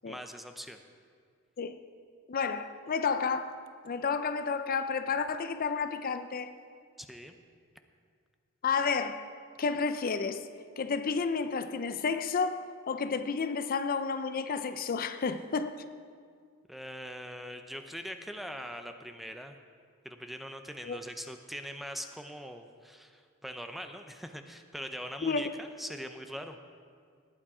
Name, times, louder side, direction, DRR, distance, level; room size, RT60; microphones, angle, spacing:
voice 1, 0.1-0.8 7.0-7.3 16.7-19.6 20.0-26.6, equal, ahead, 0.6 m, -42 dB
voice 2, 2.3-3.6 3.8-6.5 8.6-9.2 9.6-10.5 10.8-15.7 20.9-21.0 25.2-25.4, left 5 dB, 45° left, 0.5 m, -31 dB
19.0 x 8.7 x 4.9 m
head